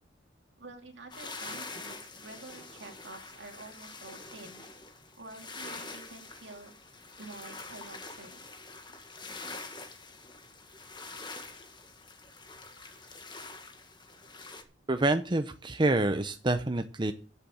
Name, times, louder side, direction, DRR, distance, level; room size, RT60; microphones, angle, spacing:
voice 1, 0.6-4.7 5.2-6.7 7.2-8.5, right 3 dB, 65° right, 4 dB, 2.7 m, -48 dB
sound 1, 1.1-14.6, left 3 dB, 25° left, 1.7 m, -45 dB
voice 2, 14.9-17.1, right 2 dB, 25° right, 8 dB, 0.7 m, -27 dB
11.5 x 7.1 x 7.7 m, 0.38 s
head